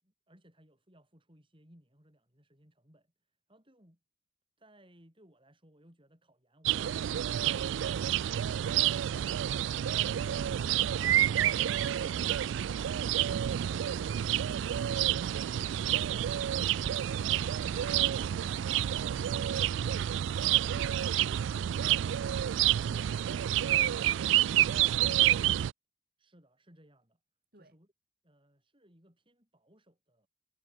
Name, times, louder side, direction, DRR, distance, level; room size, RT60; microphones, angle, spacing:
voice 1, 0.0-4.0 4.6-7.6 26.2-27.2 27.5-27.9 28.2-30.3, equal, 25° right, 7.4 m, -63 dB
sound 1, 6.7-25.7, right 11 dB, 70° right, 0.3 m, -29 dB
voice 2, 10.0-25.0 27.5-27.7, right 2 dB, 50° right, 6.2 m, -58 dB
head